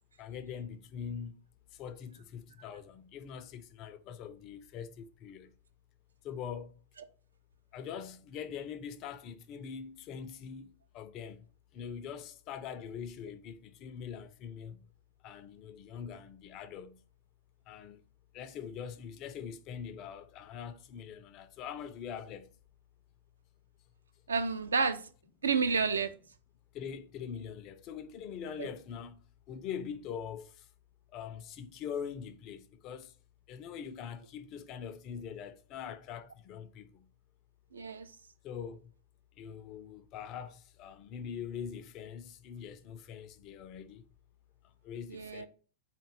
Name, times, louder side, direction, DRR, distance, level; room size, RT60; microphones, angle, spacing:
voice 1, 0.2-1.4 1.7-5.5 6.2-6.8 7.7-11.5 11.7-14.9 15.2-17.0 17.7-18.0 18.3-22.5 26.7-30.7 31.1-33.2 33.5-37.1 38.4-38.9 39.4-44.0 44.6-45.5, left 7 dB, 40° left, 0.3 m, -43 dB
voice 2, 24.3-25.0 25.4-26.1 28.6-28.7 37.7-38.1 45.1-45.5, right 5 dB, 70° right, 0.3 m, -30 dB
3.6 x 2.2 x 3.8 m
figure-of-eight pair, 90°, 0 cm